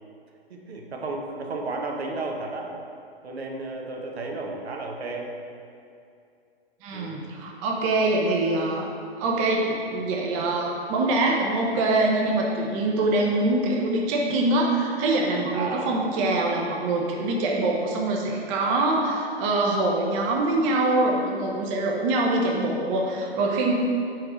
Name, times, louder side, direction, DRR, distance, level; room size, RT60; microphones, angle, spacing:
voice 1, 0.5-2.7 3.2-5.3 6.9-7.2 12.9-13.1 15.5-16.0, right 3 dB, 80° right, 0 dB, 1.1 m, -33 dB
voice 2, 6.8-8.9 9.2-23.7, right 2 dB, 30° right, -1 dB, 0.8 m, -24 dB
4.8 x 4.7 x 5.6 m, 2.5 s
hypercardioid pair, 130°, 32 cm